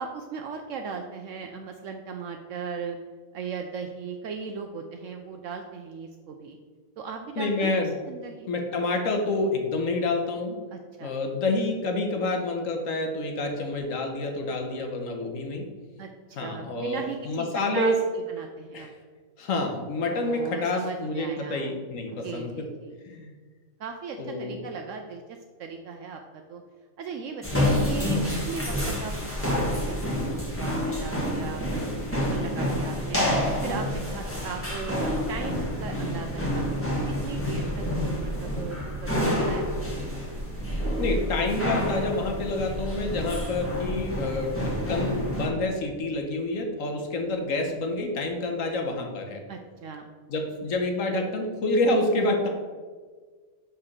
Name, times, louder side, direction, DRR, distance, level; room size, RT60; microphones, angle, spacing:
voice 1, 0.0-3.0 3.3-6.6 7.0-8.5 10.7-11.1 16.0-17.9 18.3-18.9 20.1-21.7 22.1-22.9 23.8-25.2 25.6-26.6 27.0-28.7 29.0-33.2 33.6-36.9 37.2-40.2 49.5-50.1, right 5 dB, 70° right, 4 dB, 0.9 m, -38 dB
voice 2, 7.4-7.9 8.5-10.6 11.0-15.7 16.4-18.0 18.7-18.9 19.4-22.6 23.0-23.3 24.2-24.6 41.0-49.4 50.3-52.5, left 2 dB, 70° left, 3 dB, 1.5 m, -28 dB
sound 1, 27.4-45.5, equal, 10° left, 1.6 m, -28 dB
6.0 x 4.4 x 6.5 m, 1.5 s
omnidirectional pair, 1.4 m